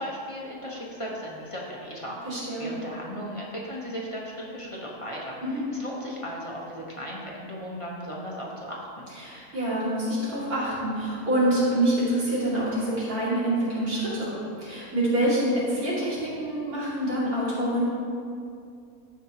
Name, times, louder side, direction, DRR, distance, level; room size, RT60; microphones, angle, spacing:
voice 1, 0.0-9.1, equal, 25° left, -4 dB, 0.9 m, -36 dB
voice 2, 2.2-2.7 5.4-5.6 9.1-17.9, right 1 dB, 75° right, -8 dB, 2.9 m, -26 dB
14.5 x 5.3 x 2.9 m, 2.4 s
omnidirectional pair, 1.6 m